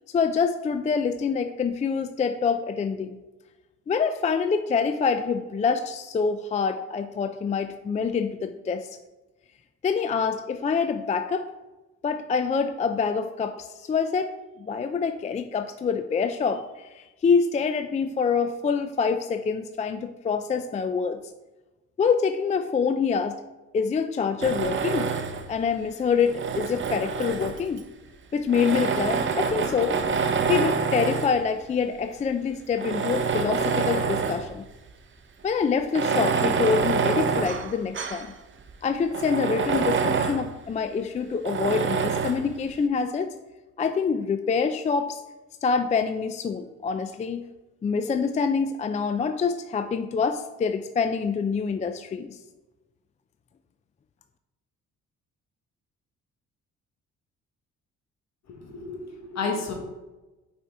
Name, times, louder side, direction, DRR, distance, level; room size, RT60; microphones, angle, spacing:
voice 1, 0.1-3.2 3.9-8.9 9.8-11.5 12.0-21.2 22.0-23.4 23.7-25.1 25.5-27.8 28.3-30.0 30.5-34.7 35.4-38.3 38.8-43.3 43.8-45.2 45.6-47.4 47.8-52.4, left 5 dB, 25° left, 8 dB, 0.3 m, -26 dB
Tools, 24.4-25.5 26.2-27.8 28.5-31.4 32.1-32.2 32.7-34.5 34.9-35.0 35.8-38.3 38.7-38.8 39.1-40.5 41.5-42.5, right 5 dB, 40° right, 0.6 m, -26 dB
voice 2, 58.5-59.7, left 4 dB, 60° left, 2 dB, 1.5 m, -31 dB
5.7 x 4.4 x 4.2 m, 1.1 s
cardioid pair, 90°, 30 cm